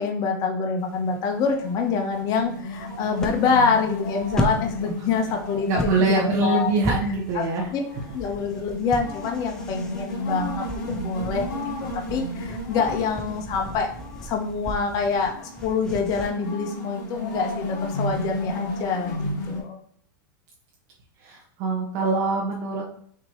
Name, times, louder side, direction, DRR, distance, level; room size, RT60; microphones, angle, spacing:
voice 1, 0.0-6.7 7.3-7.5 7.7-7.8 8.1-11.5 11.9-13.9 14.2-19.2 19.5-19.8, left 5 dB, 35° left, 3 dB, 0.9 m, -26 dB
sound 1, 0.8-19.6, left 1 dB, 55° left, 1.6 m, -34 dB
sound 2, 2.7-16.3, equal, 5° left, 0.6 m, -35 dB
voice 2, 5.7-7.7 21.2-22.8, right 3 dB, 45° right, -2 dB, 1.1 m, -24 dB
6.0 x 2.9 x 2.9 m, 0.63 s
supercardioid pair, 145°, 11 cm